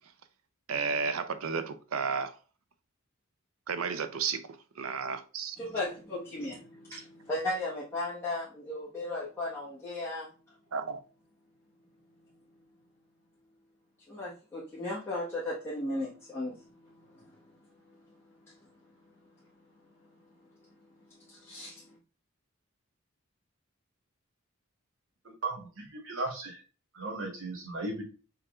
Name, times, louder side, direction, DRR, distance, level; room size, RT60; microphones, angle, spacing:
voice 1, 0.7-2.4 3.7-4.4 4.8-5.6 10.7-11.0, right 5 dB, 90° right, 0.6 m, -32 dB
voice 2, 5.6-10.3 14.1-17.6 17.9-18.0 18.4-18.5 20.0-20.1 21.1-22.0, left 2 dB, 10° left, 1.3 m, -36 dB
voice 3, 25.2-26.6 26.9-28.0, right 2 dB, 65° right, 1.4 m, -36 dB
5.8 x 3.5 x 2.4 m
head